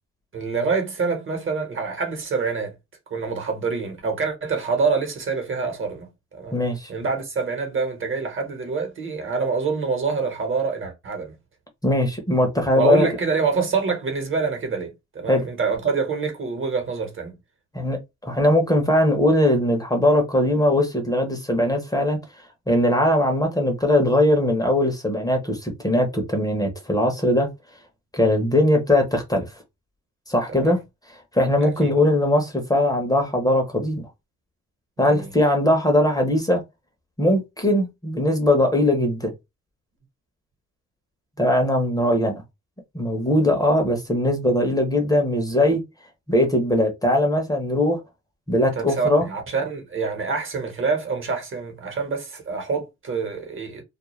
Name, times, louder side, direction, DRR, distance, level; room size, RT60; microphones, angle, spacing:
voice 1, 0.3-2.7 3.1-6.6 6.9-11.4 12.8-17.3 30.5-30.8 31.6-31.9 35.0-35.3 48.8-53.8, right 5 dB, 40° right, 1.1 m, -26 dB
voice 2, 6.5-6.9 11.8-13.1 15.3-15.4 17.7-22.2 22.7-27.5 28.1-29.5 30.3-30.8 31.1-34.0 35.0-36.6 37.2-39.3 41.4-42.4 42.9-45.8 46.3-48.0 48.5-49.3, left 1 dB, 10° left, 0.8 m, -20 dB
2.4 x 2.1 x 3.0 m
cardioid pair, 90°, 30 cm